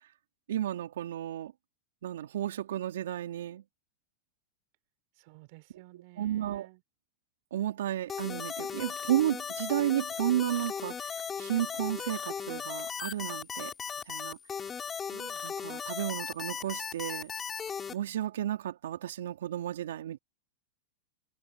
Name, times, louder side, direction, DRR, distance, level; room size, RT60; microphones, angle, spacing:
voice 1, 0.5-1.5 2.0-3.6 6.2-6.7 7.5-13.7 14.1-14.4 15.4-17.3 17.9-20.2, right 12 dB, 80° right, 3.1 m, -32 dB
voice 2, 5.2-6.8 15.1-15.5, right 21 dB, 55° right, 4.6 m, -53 dB
sound 1, 8.1-17.9, left 7 dB, 20° left, 4.7 m, -37 dB
hypercardioid pair, 115°, 0 cm